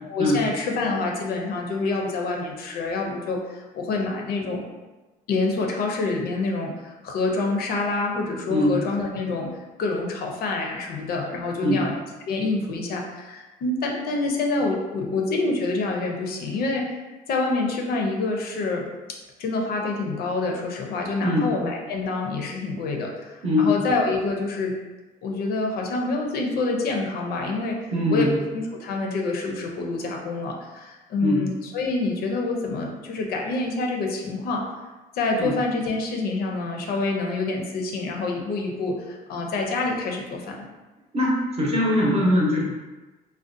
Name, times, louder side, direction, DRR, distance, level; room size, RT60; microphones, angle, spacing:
voice 1, 0.0-4.6 5.3-9.5 9.8-12.0 12.2-16.9 17.3-18.9 19.4-24.8 25.2-34.6 35.1-40.7, left 3 dB, 65° left, 1 dB, 0.5 m, -27 dB
voice 2, 23.4-23.8 27.9-28.3 31.2-31.4 35.4-35.5 41.1-42.6, left 1 dB, 40° right, -4 dB, 0.7 m, -21 dB
2.4 x 2.1 x 2.5 m, 1.2 s
cardioid pair, 110°, 17 cm